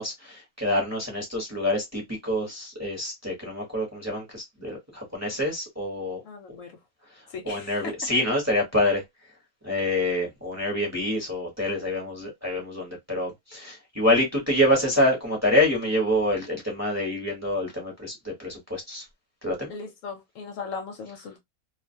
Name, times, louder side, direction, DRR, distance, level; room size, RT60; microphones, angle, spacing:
voice 1, 0.0-6.2 7.4-9.0 9.6-19.0 19.4-19.7, left 1 dB, 15° right, 0.8 m, -26 dB
voice 2, 6.2-6.7 7.3-7.9 19.7-21.4, left 5 dB, 70° left, 0.9 m, -37 dB
2.4 x 2.4 x 2.5 m
omnidirectional pair, 1.5 m